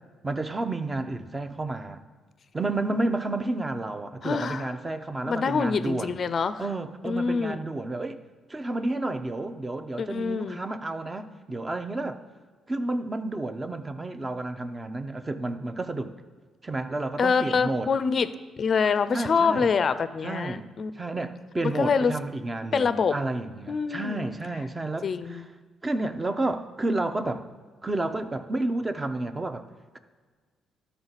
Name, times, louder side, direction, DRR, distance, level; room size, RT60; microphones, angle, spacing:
voice 1, 0.2-2.0 2.5-6.2 6.6-8.2 8.5-12.2 12.7-16.1 16.6-17.9 19.1-19.7 20.2-20.7 20.9-25.4 25.8-27.5 27.8-29.7, right 2 dB, 20° right, 9 dB, 0.6 m, -31 dB
voice 2, 4.2-4.7 5.3-6.6 7.0-7.6 10.0-10.6 17.2-18.3 18.6-20.9 21.8-22.1 22.7-23.1 23.7-24.1 25.0-25.4, left 5 dB, 45° left, 13 dB, 0.4 m, -25 dB
12.5 x 4.5 x 4.0 m, 1.5 s
cardioid pair, 90°, 0 cm